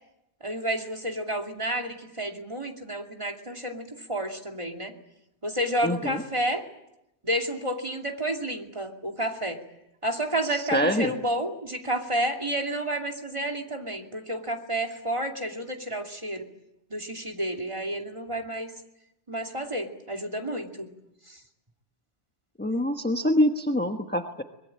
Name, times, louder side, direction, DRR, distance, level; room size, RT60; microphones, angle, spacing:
voice 1, 0.4-4.9 5.4-6.6 7.2-9.6 10.0-16.5 16.9-18.7 19.3-20.9 21.3-21.4, right 1 dB, 25° right, 2 dB, 2.7 m, -30 dB
voice 2, 5.8-6.2 10.5-11.1 22.6-24.4, left 1 dB, 10° left, 4 dB, 1.2 m, -25 dB
24.0 x 21.5 x 8.8 m, 0.87 s
omnidirectional pair, 1.2 m